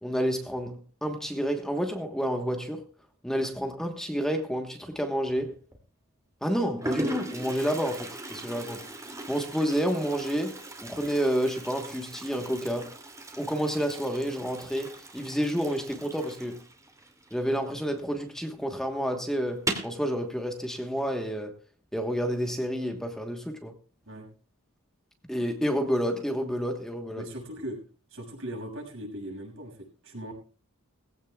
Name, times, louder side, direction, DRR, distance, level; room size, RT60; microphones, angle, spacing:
voice 1, 0.0-2.9 3.2-5.6 6.4-8.9 9.3-12.9 13.4-16.6 17.3-21.5 21.9-23.7 25.3-27.3, equal, ahead, 1.3 m, -29 dB
Toilet flush, 5.3-5.8 6.5-6.6 6.8-18.1 18.4-18.5 18.8-18.9 19.5-20.0, right 1 dB, 15° right, 2.5 m, -39 dB
voice 2, 27.2-27.8 28.1-30.3, right 1 dB, 65° right, 6.7 m, -39 dB
20.0 x 16.0 x 2.4 m
head